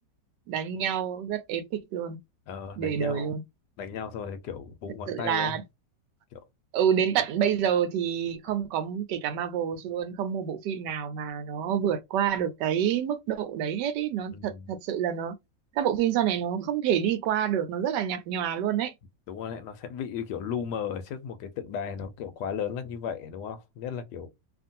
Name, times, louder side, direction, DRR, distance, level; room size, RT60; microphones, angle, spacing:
voice 1, 0.5-2.2 2.8-3.4 5.1-5.6 6.7-15.4 15.7-18.9, right 9 dB, 75° right, 1.2 m, -28 dB
voice 2, 2.5-3.3 3.8-5.6 6.3-6.4 14.3-14.7 19.3-24.3, left 7 dB, 75° left, 1.2 m, -35 dB
2.9 x 2.5 x 2.5 m
omnidirectional pair, 1.9 m